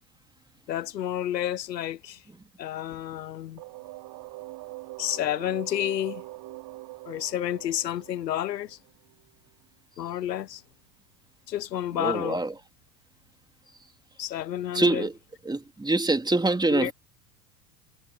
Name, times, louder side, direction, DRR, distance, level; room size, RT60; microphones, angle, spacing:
voice 1, 0.7-2.2 2.6-3.6 5.0-6.2 7.0-8.8 10.0-10.6 11.5-12.4 14.2-15.1 16.7-16.9, left 12 dB, 80° left, 1.4 m, -30 dB
sound 1, 3.6-9.3, right 21 dB, 50° right, 5.4 m, -43 dB
voice 2, 12.0-12.5 14.7-15.2 15.4-16.9, right 2 dB, 10° right, 3.3 m, -24 dB
hypercardioid pair, 85°, 49 cm